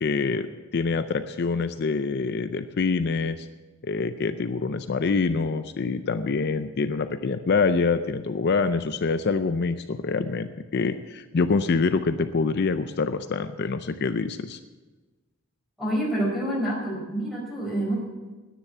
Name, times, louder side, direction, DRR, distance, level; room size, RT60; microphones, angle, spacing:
voice 1, 0.0-3.5 3.8-14.6, left 4 dB, 50° left, 10 dB, 0.5 m, -25 dB
voice 2, 15.8-18.0, right 1 dB, ahead, -3 dB, 4.6 m, -27 dB
10.0 x 10.0 x 7.9 m, 1.2 s
head